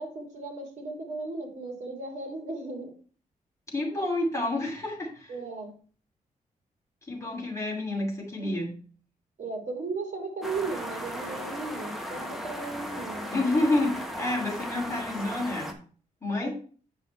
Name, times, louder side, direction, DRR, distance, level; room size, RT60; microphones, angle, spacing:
voice 1, 0.0-2.9 5.3-5.7 9.4-13.3 16.4-16.5, right 3 dB, 60° right, 2 dB, 2.8 m, -36 dB
voice 2, 3.7-5.3 7.1-8.7 13.3-15.7 16.2-16.5, left 2 dB, 20° left, -1 dB, 2.7 m, -29 dB
sound 1, 10.4-15.7, equal, ahead, 1.1 m, -36 dB
7.9 x 5.5 x 4.4 m, 0.41 s
wide cardioid pair, 160°, 14 cm